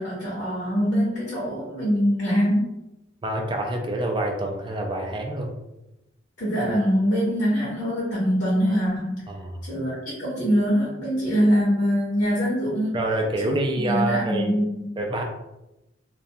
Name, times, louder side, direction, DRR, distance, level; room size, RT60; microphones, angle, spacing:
voice 1, 0.0-2.7 6.4-9.2 9.6-13.0 13.4-14.9, equal, 60° left, -7 dB, 0.7 m, -23 dB
voice 2, 3.2-5.5 9.3-9.6 12.9-14.5 15.0-15.2, right 1 dB, 25° right, 1 dB, 0.3 m, -26 dB
2.3 x 2.1 x 2.6 m, 0.94 s
head